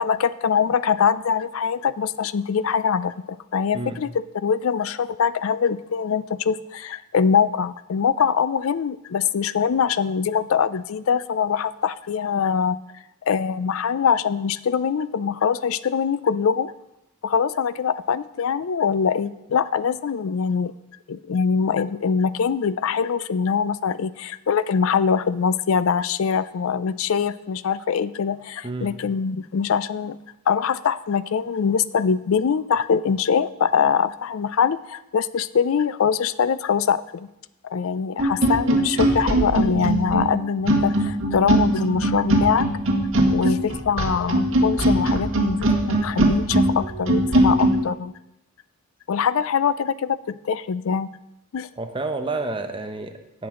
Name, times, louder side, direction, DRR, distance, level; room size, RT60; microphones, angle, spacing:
voice 1, 0.0-12.8 13.2-16.7 17.2-20.7 21.1-30.2 30.5-37.3 37.6-42.7 43.3-48.1 49.1-51.1 51.5-51.7, left 6 dB, 70° left, 16 dB, 0.4 m, -23 dB
sound 1, 38.2-47.8, right 1 dB, 65° right, 1.8 m, -20 dB
voice 2, 51.8-53.5, right 3 dB, 25° right, 6 dB, 0.8 m, -30 dB
17.0 x 6.1 x 3.7 m, 0.87 s
head